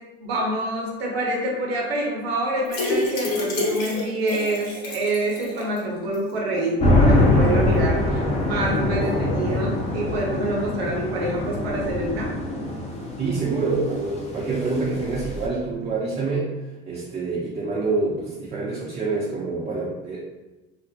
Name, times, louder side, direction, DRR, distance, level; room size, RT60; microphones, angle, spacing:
voice 1, 0.2-12.3, right 1 dB, 75° right, -2 dB, 0.8 m, -26 dB
sound 1, 2.7-5.8 6.1-6.2 6.5-6.6, left 2 dB, 60° left, 0.9 m, -28 dB
sound 2, 6.8-15.5, left 2 dB, 20° left, 0.6 m, -23 dB
voice 2, 13.2-20.2, right 3 dB, 20° right, -5 dB, 0.5 m, -26 dB
2.4 x 2.0 x 2.7 m, 1.1 s
hypercardioid pair, 70°, 31 cm